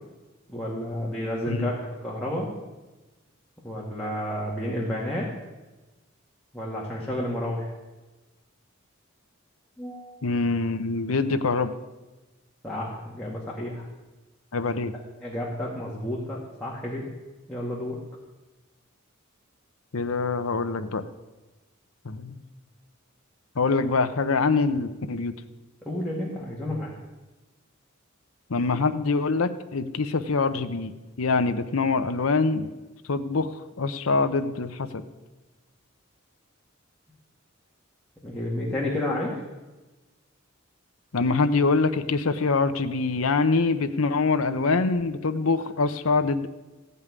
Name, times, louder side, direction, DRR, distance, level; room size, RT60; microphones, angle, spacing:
voice 1, 0.5-1.8 2.0-2.5 3.6-5.3 6.5-7.7 9.8-10.2 12.6-13.9 15.2-17.1 17.5-18.0 25.8-26.9 38.2-39.4, left 1 dB, 5° left, -6 dB, 2.0 m, -31 dB
voice 2, 10.2-11.7 14.5-14.9 19.9-21.0 22.0-22.4 23.6-25.3 28.5-32.7 33.1-35.0 41.1-46.5, left 4 dB, 80° left, 9 dB, 0.8 m, -24 dB
15.5 x 5.6 x 9.6 m, 1.1 s
head